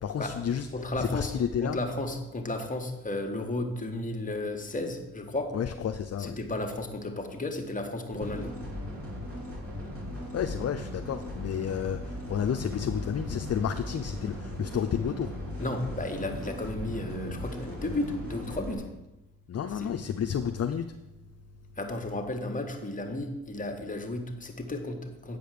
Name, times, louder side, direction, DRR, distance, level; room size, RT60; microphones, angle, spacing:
voice 1, 0.0-0.7 1.0-1.8 5.5-6.4 10.3-15.3 19.5-20.8, left 8 dB, 45° left, 6 dB, 0.6 m, -31 dB
voice 2, 0.7-1.3 1.6-5.6 6.2-8.5 15.6-18.9 19.7-19.9 21.8-25.4, left 2 dB, 25° left, 4 dB, 1.5 m, -33 dB
sound 1, 8.1-18.7, left 1 dB, 40° right, 3.1 m, -38 dB
8.7 x 5.1 x 6.7 m, 0.98 s
cardioid pair, 65°, 34 cm